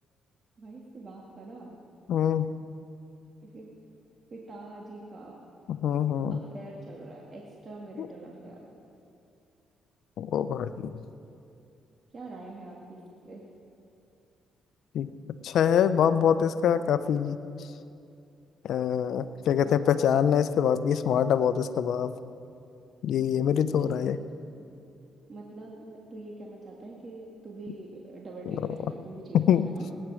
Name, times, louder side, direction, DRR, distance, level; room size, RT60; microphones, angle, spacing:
voice 1, 0.6-1.7 3.4-3.7 4.3-5.4 6.3-8.7 12.1-13.4 19.6-19.8 23.9-24.0 24.5-24.8 25.3-29.9, right 2 dB, 45° right, -2 dB, 2.0 m, -44 dB
voice 2, 2.1-2.5 5.7-6.4 8.0-8.1 10.2-11.0 14.9-15.1 15.4-17.4 18.6-22.1 23.0-24.2 29.3-29.6, left 8 dB, 75° left, 13 dB, 0.6 m, -24 dB
19.0 x 10.0 x 6.3 m, 2.6 s
cardioid pair, 90°, 0 cm